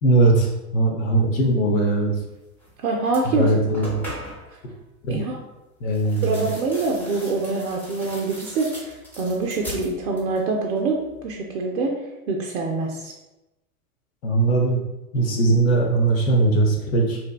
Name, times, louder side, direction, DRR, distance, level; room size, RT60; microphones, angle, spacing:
voice 1, 0.0-2.1 3.2-4.0 5.0-5.2 5.8-6.5 14.2-14.8 15.1-17.2, right 2 dB, 60° left, -1 dB, 0.7 m, -20 dB
sound 1, 2.6-2.7 3.0-4.5 5.9-10.5 10.8-11.4, equal, 5° left, 0.6 m, -39 dB
voice 2, 2.8-3.5 5.1-5.4 6.2-11.0 11.2-11.9 12.3-13.1, right 3 dB, 65° right, 0 dB, 0.5 m, -25 dB
2.7 x 2.1 x 2.3 m, 0.98 s
figure-of-eight pair, 90°, 45 cm